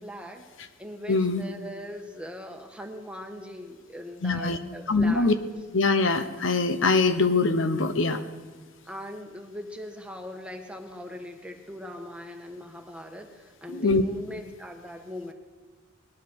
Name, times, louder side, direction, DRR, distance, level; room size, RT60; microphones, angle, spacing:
voice 1, 0.0-0.5 0.8-5.3 8.9-15.3, left 1 dB, 5° right, 3 dB, 1.3 m, -40 dB
voice 2, 1.1-1.4 4.2-4.6 4.9-5.3 5.7-8.2 13.7-14.0, left 3 dB, 75° left, 9 dB, 0.9 m, -23 dB
19.5 x 11.5 x 6.2 m, 1.4 s
head